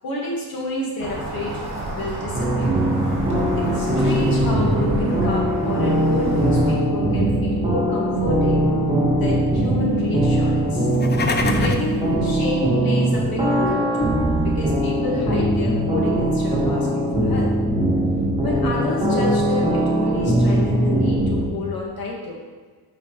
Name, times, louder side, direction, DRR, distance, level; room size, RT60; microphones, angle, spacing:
voice 1, 0.0-1.6 1.9-2.8 3.6-8.6 9.1-10.9 11.6-17.5 18.4-22.4, left 2 dB, 70° left, -2 dB, 2.0 m, -29 dB
sound 1, 1.0-6.7, right 2 dB, 35° right, 1.9 m, -30 dB
sound 2, 2.3-21.5, right 1 dB, 15° right, 1.9 m, -21 dB
sound 3, 10.8-12.0, left 4 dB, 30° left, 0.5 m, -25 dB
7.4 x 4.9 x 3.3 m, 1.4 s
cardioid pair, 110°, 37 cm